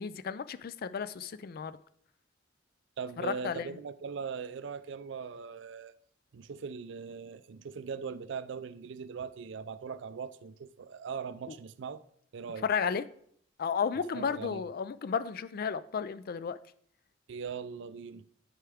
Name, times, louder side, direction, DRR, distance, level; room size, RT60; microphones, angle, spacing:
voice 1, 0.0-1.8 3.2-3.7 12.6-13.0 13.6-16.6, left 6 dB, 50° left, 0.4 m, -33 dB
voice 2, 3.0-5.9 6.3-12.0 12.3-12.7 14.1-14.6 17.3-18.2, right 6 dB, 65° right, 0.4 m, -40 dB
10.0 x 4.4 x 3.5 m
head